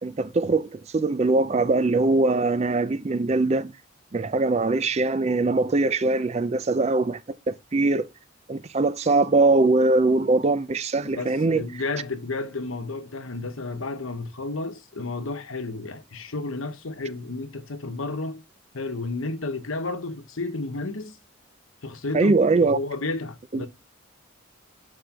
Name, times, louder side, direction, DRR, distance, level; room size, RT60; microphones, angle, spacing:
voice 1, 0.0-3.7 4.1-7.2 7.5-8.1 8.5-11.6 22.1-22.8 23.5-23.7, right 3 dB, 30° right, 0.4 m, -22 dB
voice 2, 11.1-18.4 18.7-21.2 21.8-22.4 22.7-23.7, left 3 dB, 80° left, 1.0 m, -32 dB
8.0 x 4.8 x 2.9 m
head